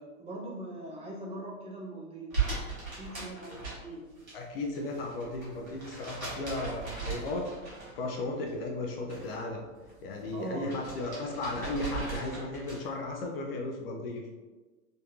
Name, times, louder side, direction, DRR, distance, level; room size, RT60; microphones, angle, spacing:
voice 1, 0.0-2.4 3.0-4.0 10.3-11.3, right 2 dB, 15° right, -5 dB, 0.6 m, -41 dB
sound 1, 2.3-4.3 4.6-8.1 8.5-9.4 9.8-13.0, right 5 dB, 80° right, 1.3 m, -38 dB
voice 2, 4.3-9.6 10.0-14.2, left 2 dB, 45° left, 1 dB, 0.5 m, -35 dB
3.7 x 2.6 x 2.4 m, 1.3 s
figure-of-eight pair, 90°, 41 cm